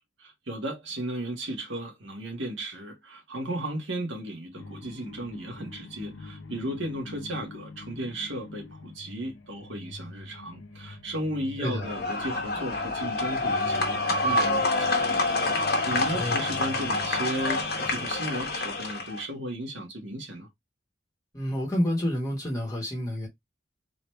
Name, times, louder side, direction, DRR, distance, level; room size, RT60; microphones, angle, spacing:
voice 1, 0.2-20.5, right 1 dB, 75° right, 1.7 m, -35 dB
sound 1, 4.5-18.1, left 3 dB, 75° left, 0.8 m, -45 dB
voice 2, 11.6-11.9 16.1-16.4 21.3-23.3, left 1 dB, 20° left, 1.5 m, -29 dB
sound 2, 11.8-19.2, left 2 dB, 50° left, 1.2 m, -27 dB
4.0 x 3.1 x 3.2 m
head